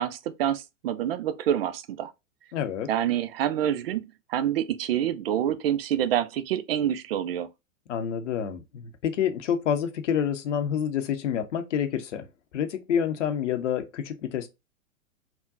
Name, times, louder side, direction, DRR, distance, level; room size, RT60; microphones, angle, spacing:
voice 1, 0.0-2.1 2.9-7.5, right 10 dB, 50° right, 0.4 m, -27 dB
voice 2, 2.5-2.9 7.9-12.2 12.5-14.5, left 8 dB, 65° left, 0.6 m, -28 dB
3.5 x 2.2 x 2.5 m
figure-of-eight pair, 100°, 40 cm